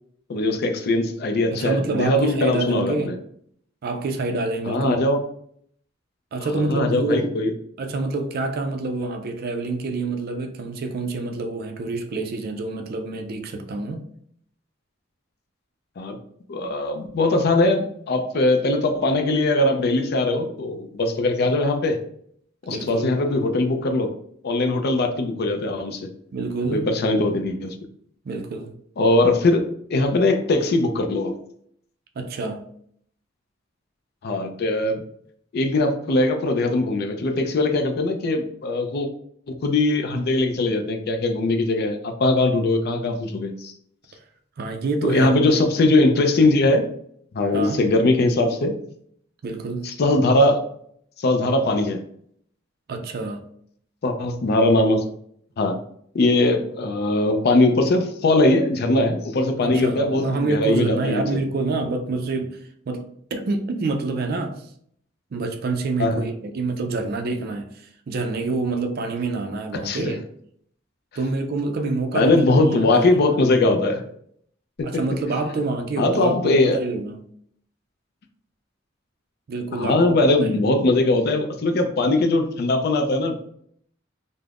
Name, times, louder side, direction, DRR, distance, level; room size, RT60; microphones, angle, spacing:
voice 1, 0.3-3.1 4.7-5.2 6.5-7.5 16.0-16.2 16.5-22.0 22.7-24.1 24.4-26.1 26.7-27.7 29.0-29.6 29.9-31.3 34.2-35.0 35.5-39.1 39.5-43.7 45.0-46.9 47.3-48.8 49.8-50.6 51.2-52.0 54.0-55.0 55.6-55.8 56.1-61.4 66.0-66.2 69.8-70.1 72.1-74.0 74.8-75.0 75.4-75.5 76.0-76.8 79.7-83.5, left 2 dB, 55° left, 0.4 m, -20 dB
voice 2, 1.5-3.2 3.8-5.1 6.3-7.4 7.8-14.0 22.7-23.2 26.3-27.0 28.2-28.7 32.2-32.6 44.6-45.6 47.5-47.8 49.4-49.9 52.9-53.4 59.6-64.7 65.3-70.2 71.2-73.4 74.8-77.2 79.5-80.0 80.4-80.7, right 3 dB, 50° right, 0.4 m, -27 dB
2.4 x 2.0 x 3.3 m
head